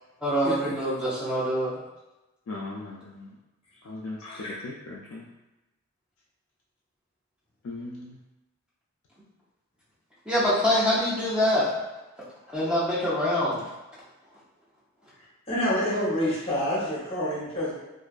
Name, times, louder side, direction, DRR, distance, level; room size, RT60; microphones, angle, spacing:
voice 1, 0.2-1.7 10.3-11.7 12.5-13.6, equal, 5° right, -9 dB, 0.6 m, -24 dB
voice 2, 2.5-3.3 3.8-5.3 7.6-8.2, left 2 dB, 60° left, -4 dB, 0.3 m, -38 dB
voice 3, 4.2-4.5 15.5-17.7, equal, 25° left, -7 dB, 0.8 m, -28 dB
2.5 x 2.3 x 2.3 m, 1.0 s
head